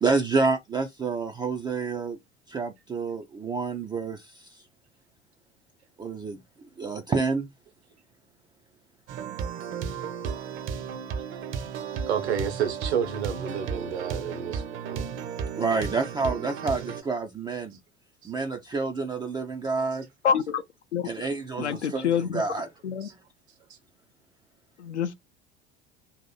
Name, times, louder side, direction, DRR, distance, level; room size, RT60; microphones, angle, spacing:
voice 1, 0.0-2.2 2.5-4.6 6.0-6.4 6.8-7.5 15.6-17.8 18.2-20.1 21.0-22.7, right 4 dB, 15° right, 0.3 m, -28 dB
sound 1, 9.1-17.0, right 7 dB, 35° right, 0.7 m, -34 dB
voice 2, 12.1-15.0 18.2-18.3 23.0-23.1, right 8 dB, 70° right, 1.0 m, -30 dB
voice 3, 20.2-20.6 20.9-21.1 21.6-22.4 22.8-23.1 24.8-25.1, left 8 dB, 80° left, 0.6 m, -26 dB
2.8 x 2.6 x 3.7 m
figure-of-eight pair, 70°, 34 cm